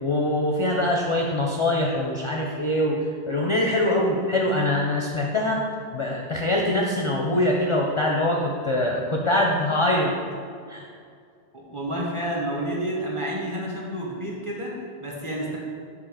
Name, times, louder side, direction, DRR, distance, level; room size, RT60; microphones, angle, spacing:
voice 1, 0.0-5.6 5.9-10.2 10.7-10.9, left 1 dB, 40° left, -1 dB, 0.5 m, -23 dB
voice 2, 11.5-15.6, right 1 dB, 30° right, -4 dB, 1.3 m, -30 dB
5.6 x 3.9 x 5.6 m, 2.2 s
omnidirectional pair, 1.1 m